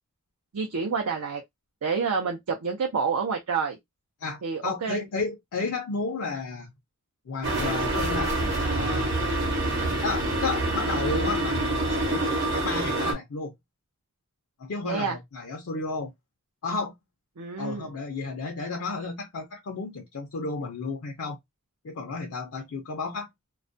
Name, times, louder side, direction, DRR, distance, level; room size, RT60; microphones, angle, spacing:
voice 1, 0.5-1.4 1.8-3.8 4.4-5.1 14.8-15.2 17.4-17.9, right 5 dB, 85° right, 0.5 m, -28 dB
voice 2, 4.2-6.7 7.3-9.1 9.8-13.5 14.6-16.1 16.6-16.9 17.6-21.4 21.8-23.3, left 4 dB, 75° left, 0.5 m, -33 dB
sound 1, 7.4-13.1, right 2 dB, 55° right, 0.9 m, -26 dB
2.3 x 2.1 x 2.5 m
head